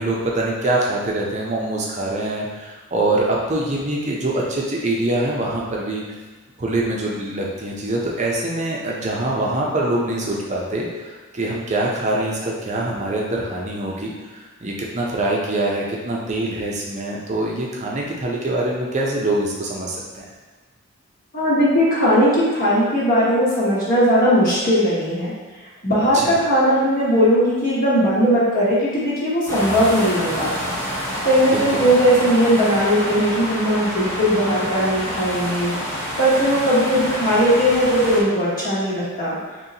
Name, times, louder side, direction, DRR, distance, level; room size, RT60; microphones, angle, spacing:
voice 1, 0.0-6.0 6.6-20.2 26.1-26.4 31.5-31.8, right 2 dB, 35° right, -3 dB, 0.6 m, -24 dB
voice 2, 21.3-25.3 25.8-30.7 31.2-35.7 36.2-39.4, equal, 40° left, -9 dB, 1.1 m, -18 dB
sound 1, 29.5-38.2, equal, 15° left, 0.7 m, -27 dB
4.0 x 3.0 x 2.8 m, 1.4 s
head